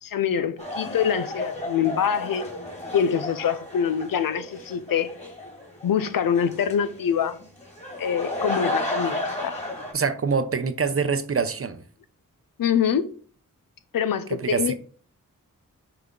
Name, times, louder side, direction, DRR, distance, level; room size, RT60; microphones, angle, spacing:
voice 1, 0.0-2.5 2.9-5.1 5.8-7.4 8.0-9.6 12.6-13.1 13.9-14.7, left 8 dB, 80° left, 0.7 m, -25 dB
sound 1, 0.6-9.9, left 1 dB, 20° left, 2.1 m, -33 dB
voice 2, 9.9-11.8 14.3-14.7, right 5 dB, 40° right, 0.7 m, -25 dB
5.9 x 4.9 x 3.8 m
cardioid pair, 70°, 33 cm